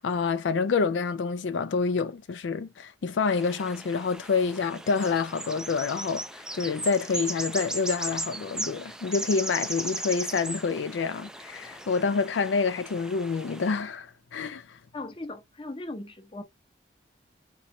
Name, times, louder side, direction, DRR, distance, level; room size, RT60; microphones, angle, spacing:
voice 1, 0.0-14.8, left 5 dB, 85° left, 0.4 m, -27 dB
sound 1, 3.2-13.8, right 1 dB, 5° right, 0.3 m, -37 dB
voice 2, 14.9-16.4, left 2 dB, 30° left, 0.8 m, -38 dB
4.2 x 3.1 x 2.5 m
head